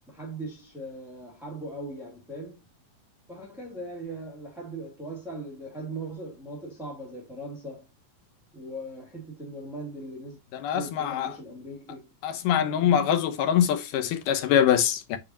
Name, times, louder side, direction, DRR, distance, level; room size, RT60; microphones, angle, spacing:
voice 1, 0.1-2.6 3.3-7.9 8.5-10.4 10.7-12.1 12.6-12.8, right 1 dB, ahead, 1.8 m, -39 dB
voice 2, 10.5-11.3 12.2-15.2, left 9 dB, 85° left, 2.6 m, -24 dB
9.0 x 4.7 x 2.8 m
omnidirectional pair, 3.7 m